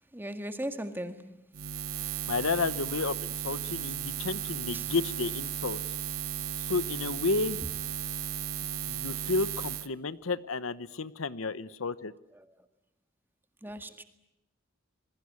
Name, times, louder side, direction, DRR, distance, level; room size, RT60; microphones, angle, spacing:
voice 1, 0.1-1.2 4.7-4.9 13.6-14.0, right 1 dB, 10° right, 8 dB, 1.8 m, -37 dB
Buzz, 1.5-9.9, right 9 dB, 80° right, 1.0 m, -35 dB
voice 2, 2.3-5.8 6.7-7.6 8.9-12.1, left 3 dB, 75° left, 16 dB, 0.9 m, -31 dB
27.5 x 21.5 x 9.7 m, 0.91 s
head